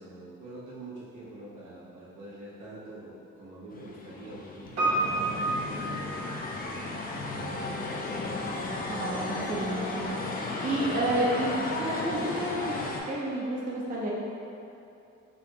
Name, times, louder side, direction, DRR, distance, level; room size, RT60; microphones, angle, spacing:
voice 1, 0.0-8.3, right 1 dB, 80° right, -9 dB, 1.1 m, -45 dB
sound 1, 3.7-13.0, left 2 dB, 30° left, 0.4 m, -34 dB
Piano, 4.8-6.8 7.1-7.2, right 2 dB, 55° right, 1.2 m, -29 dB
voice 2, 8.9-12.8 13.0-14.1, right 1 dB, 30° right, -5 dB, 0.6 m, -30 dB
3.5 x 2.3 x 3.0 m, 2.7 s
cardioid pair, 90°, 30 cm